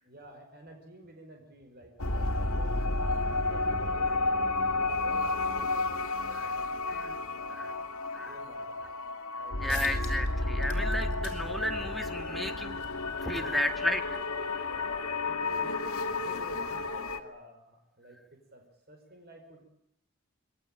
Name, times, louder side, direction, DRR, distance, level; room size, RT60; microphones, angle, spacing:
voice 1, 0.0-4.3 4.8-7.8 8.2-8.9 9.4-9.9 13.3-13.7 14.7-19.7, right 1 dB, 45° right, 4 dB, 5.2 m, -51 dB
sound 1, 2.0-17.2, left 2 dB, 85° left, 2.2 m, -31 dB
sound 2, 9.3-9.4 9.7-10.3 10.6-15.7, left 9 dB, 55° left, 5.1 m, -51 dB
voice 2, 9.6-12.8 13.2-14.7, left 1 dB, ahead, 3 dB, 2.0 m, -33 dB
26.0 x 21.0 x 9.0 m, 0.77 s
head